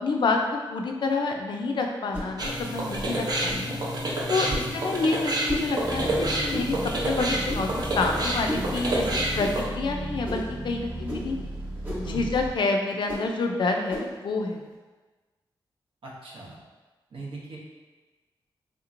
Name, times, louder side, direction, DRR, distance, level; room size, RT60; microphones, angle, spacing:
voice 1, 0.0-3.8 4.3-7.7 7.9-11.4 12.1-14.6, left 3 dB, 60° left, 3 dB, 0.4 m, -28 dB
sound 1, 2.1-2.3 3.5-3.7 4.5-4.7 5.5-5.7 6.5-6.7 7.5-7.7 8.4-8.7 9.4-9.5 10.2-10.5 11.0-11.3 11.8-12.1 13.1-13.3 13.9-14.1, equal, 20° right, 1.0 m, -33 dB
sound 2, 2.4-9.6, right 1 dB, 50° right, 0.6 m, -28 dB
sound 3, 5.8-12.5, right 1 dB, 70° right, 1.0 m, -35 dB
voice 2, 16.0-16.6 17.1-17.6, right 3 dB, 90° right, -4 dB, 0.8 m, -39 dB
3.5 x 2.8 x 2.5 m, 1.3 s
wide cardioid pair, 145°, 9 cm